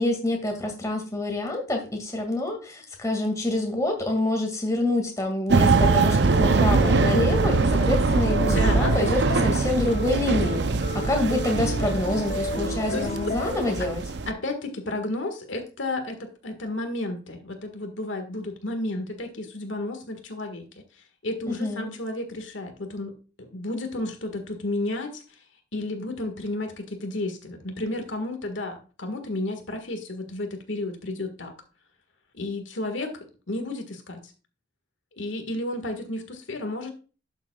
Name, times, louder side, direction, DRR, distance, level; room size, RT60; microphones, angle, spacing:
voice 1, 0.0-10.7 10.9-14.0 21.5-21.9, left 2 dB, 15° left, 2 dB, 2.0 m, -27 dB
sound 1, 5.5-13.5, left 3 dB, 45° left, 0.6 m, -35 dB
sound 2, 5.5-14.3, right 4 dB, 60° right, 0.5 m, -23 dB
voice 2, 8.4-9.6 12.9-13.3 13.8-13.9 14.3-20.6 21.2-25.4 25.7-31.5 32.3-34.3 35.2-36.9, left 2 dB, 75° left, 5 dB, 1.7 m, -32 dB
11.5 x 7.2 x 2.3 m, 0.34 s
head